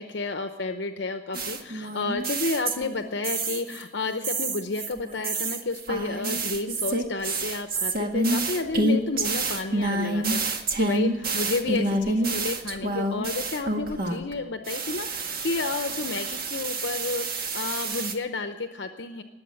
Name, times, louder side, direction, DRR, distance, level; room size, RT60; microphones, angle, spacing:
voice 1, 0.0-19.2, left 3 dB, 65° left, 7 dB, 0.8 m, -31 dB
sound 1, 1.3-3.0 3.2-3.8 4.2-14.3 14.7-18.1, right 2 dB, 55° right, 1.7 m, -28 dB
20.0 x 7.8 x 7.7 m, 1.4 s
head